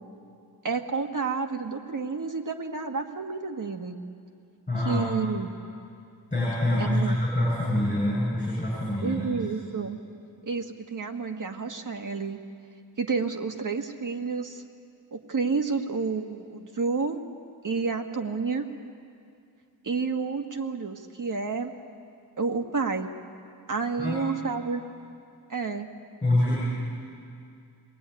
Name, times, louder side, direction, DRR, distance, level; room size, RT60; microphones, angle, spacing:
voice 1, 0.6-4.0 4.9-5.5 6.8-7.2 9.0-10.0 10.4-12.4 13.0-14.6 15.1-17.2 17.6-18.7 19.8-21.7 22.4-23.1 23.7-24.8 25.5-25.9, right 4 dB, 55° right, 4 dB, 1.6 m, -30 dB
voice 2, 4.7-5.0 6.3-9.4 24.0-24.2 26.2-26.6, left 1 dB, 20° left, -7 dB, 7.6 m, -25 dB
24.0 x 20.0 x 9.5 m, 2.4 s
wide cardioid pair, 160°, 38 cm